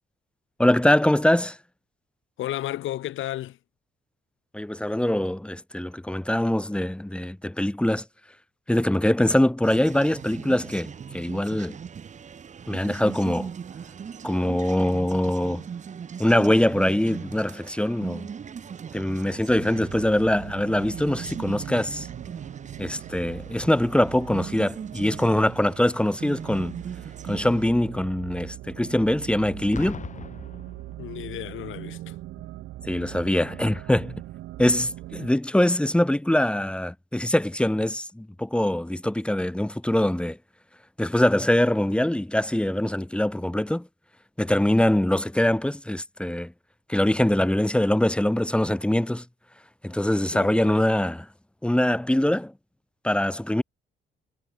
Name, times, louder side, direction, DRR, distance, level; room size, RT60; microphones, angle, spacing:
voice 1, 0.6-1.6 4.5-8.0 8.7-11.8 12.7-13.5 14.2-15.6 16.2-18.3 18.9-22.1 22.8-26.8 27.3-30.0 32.9-34.2 34.6-40.4 41.0-43.9 44.4-46.5 46.9-49.2 49.8-51.3 51.6-52.5 53.0-53.6, left 1 dB, 5° left, 0.9 m, -23 dB
voice 2, 2.4-3.6 31.0-32.2 50.3-50.7, left 13 dB, 80° left, 3.0 m, -33 dB
sound 1, 9.6-27.6, right 7 dB, 35° right, 0.8 m, -39 dB
sound 2, 19.5-35.3, right 15 dB, 85° right, 0.9 m, -41 dB
Boom, 29.7-31.5 32.4-32.6, left 6 dB, 40° left, 1.6 m, -39 dB
cardioid pair, 90°, 20 cm